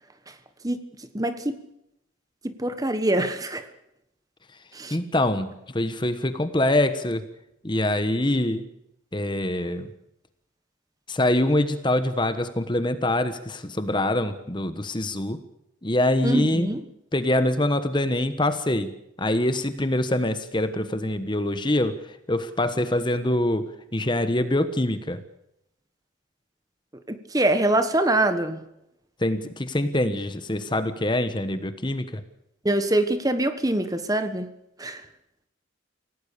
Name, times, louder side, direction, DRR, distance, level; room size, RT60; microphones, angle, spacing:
voice 1, 1.1-1.6 2.4-3.6 4.7-5.0 16.2-16.8 27.1-28.6 32.6-34.5 34.8-35.0, right 1 dB, 20° right, 10 dB, 1.3 m, -24 dB
voice 2, 4.9-7.3 7.6-8.6 9.1-9.9 11.1-15.4 15.8-16.7 17.1-23.7 23.9-25.2 29.2-32.2, left 1 dB, 25° left, 11 dB, 1.2 m, -24 dB
26.0 x 17.5 x 6.8 m, 0.82 s
head